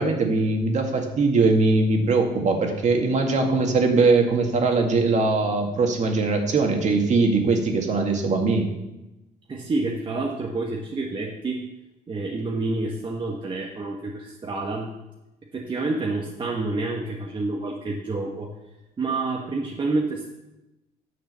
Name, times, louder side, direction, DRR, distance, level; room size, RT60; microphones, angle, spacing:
voice 1, 0.0-8.7, right 3 dB, 45° right, 2 dB, 2.0 m, -21 dB
voice 2, 9.5-11.6 12.1-14.9 15.5-18.5 19.0-20.3, right 3 dB, 30° right, -1 dB, 1.3 m, -28 dB
9.5 x 6.7 x 6.8 m, 0.97 s
cardioid pair, 110°, 17 cm